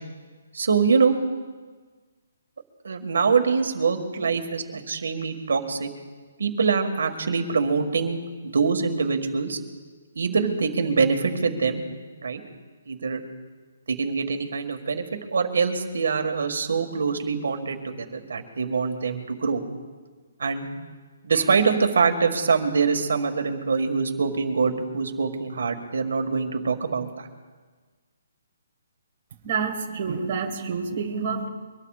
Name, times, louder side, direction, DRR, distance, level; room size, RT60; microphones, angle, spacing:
voice 1, 0.5-1.2 2.8-5.9 6.4-9.6 10.2-11.8 12.2-12.4 12.9-13.2 13.9-15.0 15.3-19.6 20.4-20.8 21.2-27.3, right 5 dB, 70° right, 5 dB, 1.8 m, -24 dB
voice 2, 29.4-31.5, right 5 dB, 30° right, -1 dB, 1.7 m, -28 dB
24.0 x 19.5 x 2.5 m, 1.4 s
hypercardioid pair, 180°, 0 cm